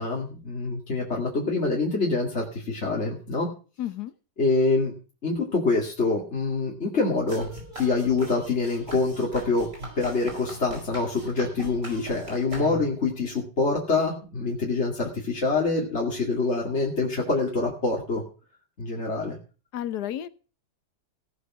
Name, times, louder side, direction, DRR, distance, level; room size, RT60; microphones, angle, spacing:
voice 1, 0.0-3.5 4.4-4.9 5.2-7.5 7.8-9.7 10.0-18.2 18.8-19.4, left 3 dB, 40° left, -2 dB, 2.6 m, -25 dB
voice 2, 3.8-4.1 19.7-20.3, left 11 dB, 70° left, 13 dB, 1.4 m, -31 dB
sound 1, 7.3-13.1, right 1 dB, 45° right, 5.7 m, -40 dB
17.0 x 8.2 x 6.1 m, 0.37 s
omnidirectional pair, 1.8 m